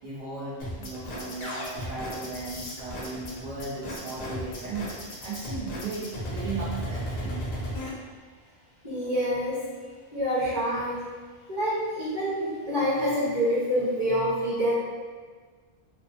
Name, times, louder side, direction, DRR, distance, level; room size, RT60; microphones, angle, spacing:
voice 1, 0.0-7.5, right 3 dB, 50° right, -9 dB, 0.6 m, -36 dB
sound 1, 0.6-7.9, equal, 60° left, 0.7 m, -35 dB
voice 2, 8.8-9.6 10.1-11.0 11.5-14.7, equal, 25° right, -11 dB, 1.0 m, -26 dB
2.8 x 2.0 x 2.7 m, 1.5 s
omnidirectional pair, 1.0 m